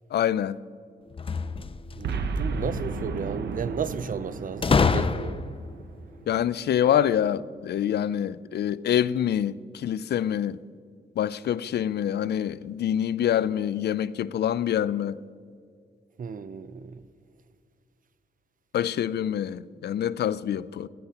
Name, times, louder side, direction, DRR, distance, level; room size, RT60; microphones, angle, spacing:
voice 1, 0.1-0.6 6.3-10.6 11.2-15.2 18.7-20.9, left 10 dB, 80° left, 0.4 m, -26 dB
sound 1, 1.1-2.2 4.6-5.7, left 5 dB, 35° left, 0.5 m, -24 dB
voice 2, 2.0-5.4 16.2-17.0, right 6 dB, 55° right, 0.6 m, -34 dB
Boom, 2.0-6.4, right 4 dB, 85° right, 0.9 m, -33 dB
16.5 x 14.5 x 2.9 m
cardioid pair, 85°, 17 cm